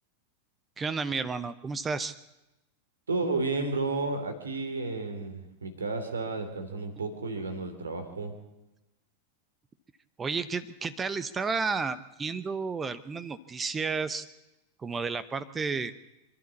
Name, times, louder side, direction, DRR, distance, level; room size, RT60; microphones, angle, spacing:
voice 1, 0.8-2.1 10.2-14.3 14.8-15.9, right 4 dB, 15° right, 15 dB, 0.9 m, -32 dB
voice 2, 3.1-8.4, right 3 dB, 75° right, 9 dB, 3.3 m, -32 dB
26.5 x 12.0 x 8.3 m, 0.96 s
figure-of-eight pair, 90°, 0 cm